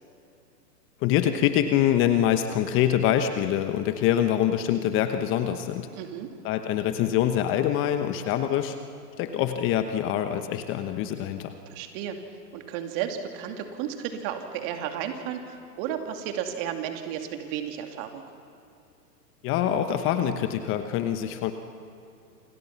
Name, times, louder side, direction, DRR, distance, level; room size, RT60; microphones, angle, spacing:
voice 1, 1.0-5.9 6.4-8.8 9.2-11.5 19.4-21.5, left 11 dB, 25° left, 8 dB, 1.1 m, -25 dB
voice 2, 5.9-6.3 11.7-12.2 12.5-18.2, right 9 dB, 35° right, 5 dB, 2.8 m, -33 dB
28.5 x 26.5 x 5.9 m, 2.7 s
hypercardioid pair, 125°, 49 cm